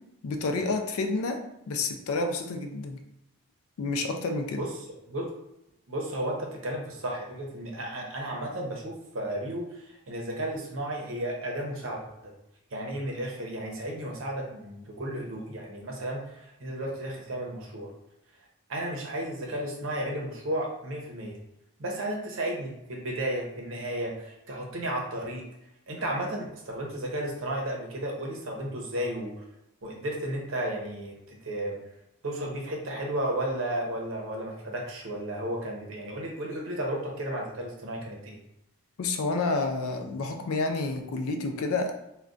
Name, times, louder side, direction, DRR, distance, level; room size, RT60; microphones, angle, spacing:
voice 1, 0.2-1.4 1.7-3.0 3.8-4.6 39.0-41.9, left 3 dB, 75° left, 5 dB, 0.4 m, -29 dB
voice 2, 5.9-12.3 12.7-17.9 18.7-21.4 21.8-25.4 25.9-29.4 29.8-31.8 32.2-38.4, right 1 dB, 60° right, 0 dB, 0.7 m, -33 dB
2.3 x 2.2 x 3.7 m, 0.84 s
head